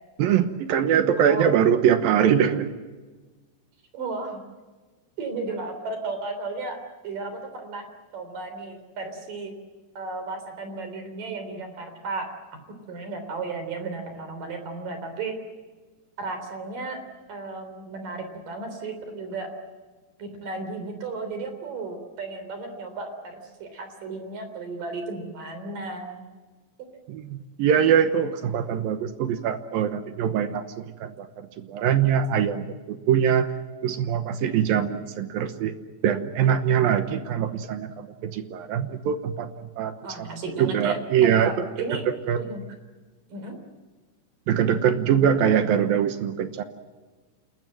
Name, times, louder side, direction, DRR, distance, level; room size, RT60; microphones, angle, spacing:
voice 1, 0.2-2.7 27.1-33.5 33.8-35.7 36.0-39.9 40.2-40.3 40.6-41.5 42.3-42.4 44.5-46.6, right 8 dB, 70° right, 9 dB, 2.3 m, -23 dB
voice 2, 3.9-4.4 5.2-7.9 8.1-9.5 9.9-12.6 12.9-15.3 16.2-17.0 17.3-19.5 20.2-26.2 40.0-42.0 42.4-42.6 43.3-43.6, right 3 dB, 50° right, 7 dB, 4.7 m, -34 dB
29.0 x 21.0 x 7.6 m, 1.3 s
omnidirectional pair, 5.4 m